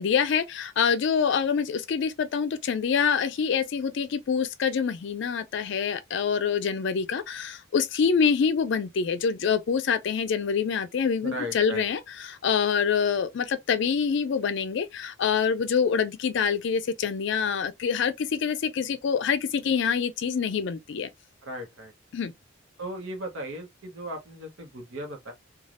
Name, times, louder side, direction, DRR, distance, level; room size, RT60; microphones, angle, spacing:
voice 1, 0.0-21.1 22.1-22.3, left 6 dB, 60° left, 0.4 m, -26 dB
voice 2, 11.2-11.8 21.4-21.9 22.8-25.3, right 1 dB, 75° right, 0.9 m, -36 dB
3.2 x 2.3 x 2.5 m
head